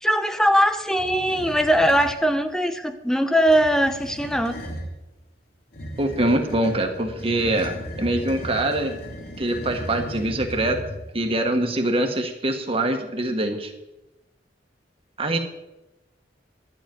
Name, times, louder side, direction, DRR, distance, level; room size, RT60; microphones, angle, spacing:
voice 1, 0.0-4.6, equal, 5° left, 8 dB, 0.8 m, -20 dB
sound 1, 0.9-2.2 3.3-4.9 5.7-11.2, equal, 60° left, 2.7 m, -36 dB
voice 2, 6.0-8.9 9.4-10.8 11.1-13.7 15.2-15.4, right 1 dB, 35° right, 4 dB, 1.5 m, -24 dB
12.0 x 6.1 x 9.3 m, 0.99 s
head